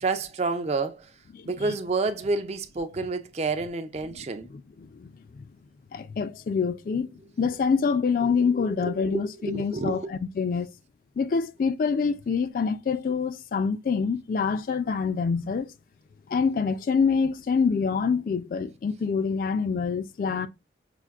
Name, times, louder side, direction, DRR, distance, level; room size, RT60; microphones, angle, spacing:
voice 1, 0.0-1.1 1.4-4.5 8.2-8.3 8.8-10.1, right 3 dB, 35° right, 0.4 m, -29 dB
voice 2, 1.3-1.7 4.8-5.4 5.9-7.1 7.4-10.7 11.2-15.7 16.3-20.5, left 5 dB, 50° left, 0.3 m, -26 dB
5.8 x 2.5 x 2.4 m
head